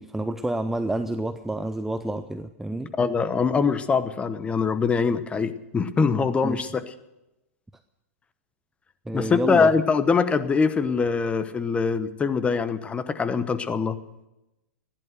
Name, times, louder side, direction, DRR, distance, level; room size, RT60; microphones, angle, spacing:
voice 1, 0.0-2.9 6.4-6.6 9.1-9.7, right 1 dB, 5° right, 10 dB, 0.5 m, -29 dB
voice 2, 3.0-6.8 9.1-14.0, left 5 dB, 15° left, 12 dB, 0.9 m, -23 dB
15.5 x 11.0 x 8.1 m, 0.95 s
hypercardioid pair, 130°, 8 cm